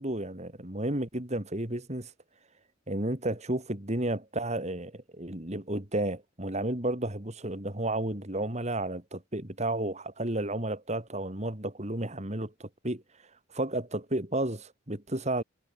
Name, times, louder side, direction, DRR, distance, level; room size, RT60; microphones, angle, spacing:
voice 1, 0.0-2.1 2.9-13.0 13.5-15.4, right 1 dB, 35° right, 3.4 m, -32 dB
head